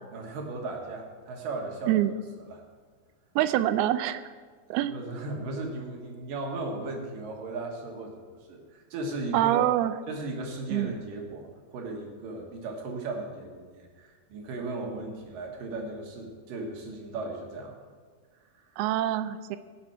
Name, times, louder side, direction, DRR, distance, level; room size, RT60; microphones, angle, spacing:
voice 1, 0.1-1.9 2.4-2.6 4.7-9.6 10.1-17.8 18.5-18.6, right 2 dB, 65° right, 1 dB, 2.8 m, -36 dB
voice 2, 3.4-4.2 4.7-5.0 9.3-9.9 10.7-10.9 18.8-19.6, right 13 dB, 90° right, 13 dB, 2.5 m, -25 dB
17.0 x 6.6 x 4.5 m, 1.5 s
omnidirectional pair, 4.4 m